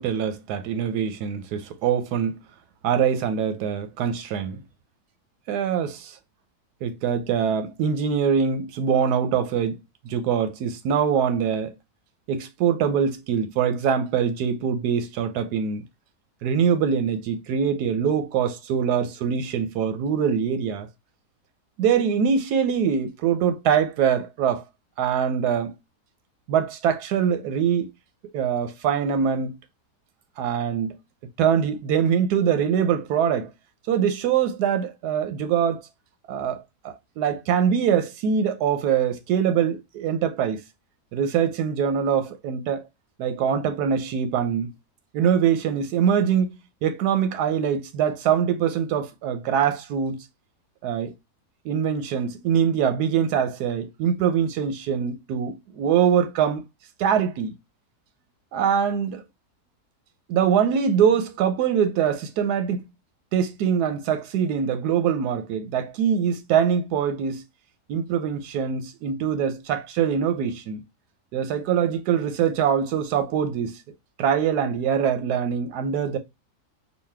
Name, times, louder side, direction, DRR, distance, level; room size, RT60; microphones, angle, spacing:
voice 1, 0.0-2.4 2.8-4.6 5.5-6.2 6.8-11.8 12.3-15.8 16.4-20.9 21.8-24.6 25.0-25.8 26.5-27.9 28.3-29.6 30.4-31.0 31.4-33.5 33.9-35.8 36.3-40.6 41.1-42.8 43.2-44.7 45.1-50.2 50.8-51.1 51.6-56.6 57.0-57.5 58.5-59.2 60.3-62.8 63.3-67.4 67.9-70.8 71.3-73.8 74.2-76.2, right 7 dB, 90° right, 1.2 m, -23 dB
4.1 x 2.3 x 3.2 m
omnidirectional pair, 1.7 m